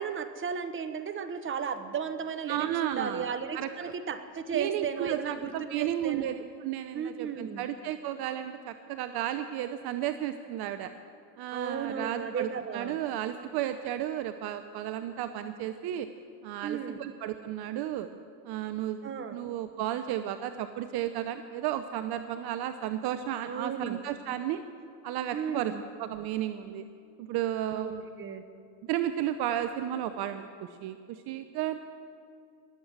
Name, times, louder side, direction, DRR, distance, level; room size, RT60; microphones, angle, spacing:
voice 1, 0.0-6.3 6.9-7.6 11.5-13.0 16.6-17.0 19.0-19.4 23.4-24.0 25.3-25.8 27.7-27.9 28.2-28.4, right 7 dB, 25° right, 9 dB, 1.1 m, -35 dB
voice 2, 2.5-3.9 4.5-10.9 11.4-16.1 16.4-18.1 18.4-24.6 25.0-26.8 27.2-28.1 28.9-31.8, right 11 dB, 50° right, 10 dB, 0.7 m, -33 dB
19.5 x 8.0 x 7.4 m, 2.4 s
supercardioid pair, 95°, 49 cm